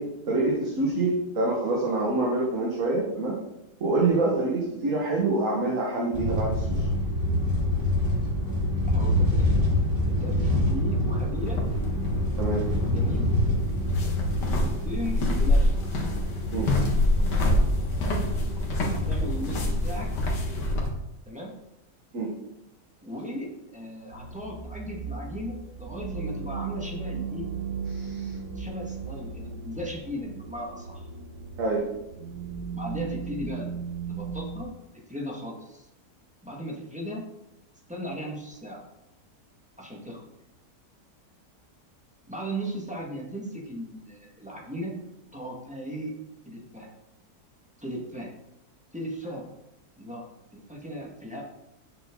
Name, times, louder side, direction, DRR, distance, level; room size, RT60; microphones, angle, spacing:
voice 1, 0.3-3.4 3.8-6.9 12.4-12.7 16.5-16.7 22.1-22.3 27.9-28.3 31.6-31.8, right 2 dB, 50° right, -3 dB, 1.9 m, -26 dB
sound 1, 6.1-20.8, left 1 dB, 30° right, 2.2 m, -27 dB
voice 2, 8.9-9.3 10.1-11.6 12.9-13.3 14.5-15.7 18.9-20.1 21.2-21.5 23.0-27.5 28.1-31.1 32.7-33.7 34.1-35.9 36.4-37.2 37.9-38.8 39.8-40.2 42.3-45.0 45.3-46.1 46.4-46.9 47.8-48.3 48.9-49.4 50.0-50.3 50.5-51.4, equal, 5° right, -2 dB, 1.7 m, -37 dB
sound 2, 11.4-20.9, left 1 dB, 80° left, 2.2 m, -27 dB
sound 3, 24.1-34.6, right 5 dB, 75° right, 1.7 m, -36 dB
9.2 x 7.0 x 3.9 m, 0.89 s
omnidirectional pair, 1.8 m